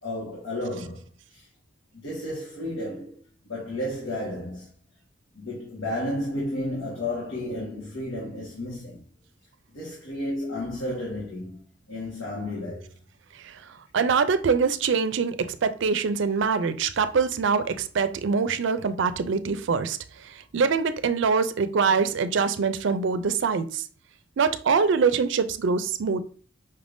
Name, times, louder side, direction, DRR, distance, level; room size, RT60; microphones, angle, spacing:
voice 1, 0.0-1.5 1.9-4.7 5.3-9.0 9.7-12.9, left 1 dB, 85° left, 1.5 m, -32 dB
voice 2, 13.9-23.8 24.4-26.2, right 5 dB, 65° right, 0.4 m, -24 dB
5.4 x 3.5 x 2.6 m
head